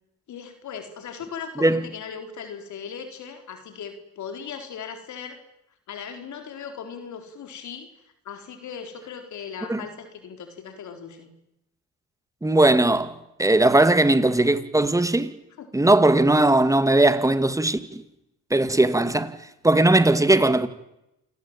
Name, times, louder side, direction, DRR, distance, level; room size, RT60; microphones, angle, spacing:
voice 1, 0.3-5.4 5.9-7.9 8.2-11.3 15.6-15.7, left 7 dB, 70° left, 4.3 m, -38 dB
voice 2, 12.4-13.1 13.4-15.3 15.7-18.0 18.5-19.3 19.6-20.7, right 2 dB, 10° right, 2.3 m, -19 dB
28.0 x 19.0 x 9.1 m
cardioid pair, 90°, 30 cm